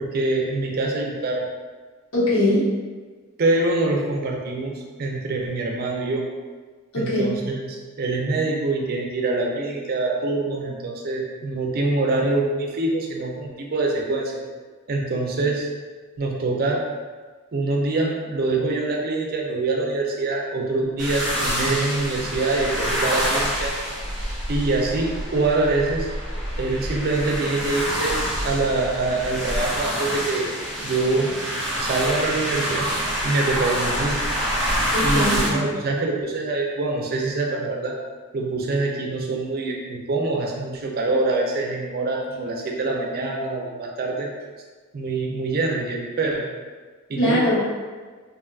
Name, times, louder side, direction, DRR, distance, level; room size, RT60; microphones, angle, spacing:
voice 1, 0.0-1.5 3.4-4.7 5.0-6.2 7.0-14.3 14.9-15.7 16.2-16.8 17.5-23.7 24.5-26.1 26.6-28.2 28.4-30.5 30.8-31.3 31.8-32.9 33.2-34.2 35.0-38.0 38.3-44.3 44.9-46.4 47.1-47.4, right 2 dB, 45° right, -1 dB, 0.4 m, -24 dB
voice 2, 2.1-2.6 6.9-7.2 34.9-35.6 47.2-47.6, left 1 dB, 80° left, -8 dB, 1.0 m, -21 dB
sound 1, 21.0-35.5, equal, ahead, 0.8 m, -26 dB
3.4 x 2.2 x 2.3 m, 1.4 s
head